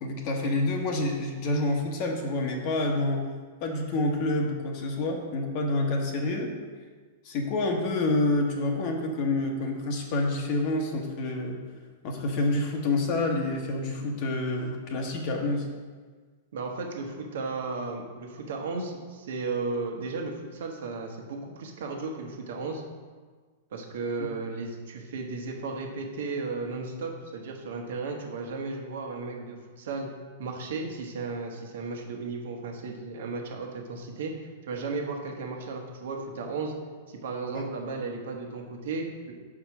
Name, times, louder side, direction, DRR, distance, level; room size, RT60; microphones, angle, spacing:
voice 1, 0.0-3.3 3.6-6.5 7.2-11.6 12.0-15.7 37.5-37.6, left 2 dB, 50° left, 1 dB, 1.0 m, -28 dB
voice 2, 16.5-22.8 23.7-30.1 30.4-36.7 37.1-39.3, right 3 dB, 70° right, 2 dB, 1.2 m, -34 dB
4.9 x 4.8 x 5.9 m, 1.5 s
hypercardioid pair, 110°, 0 cm